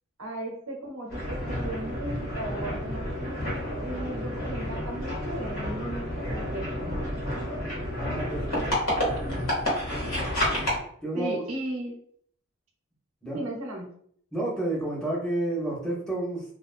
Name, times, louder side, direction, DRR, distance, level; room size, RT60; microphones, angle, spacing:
voice 1, 0.2-7.0 11.1-12.0 13.3-13.9, right 1 dB, 90° right, 1 dB, 0.7 m, -36 dB
sound 1, 1.1-10.8, left 1 dB, 85° left, 1.2 m, -30 dB
voice 2, 7.9-8.7 11.0-11.4 13.2-13.4 14.3-16.4, right 2 dB, 5° left, -4 dB, 0.6 m, -30 dB
2.3 x 2.3 x 2.4 m, 0.62 s
head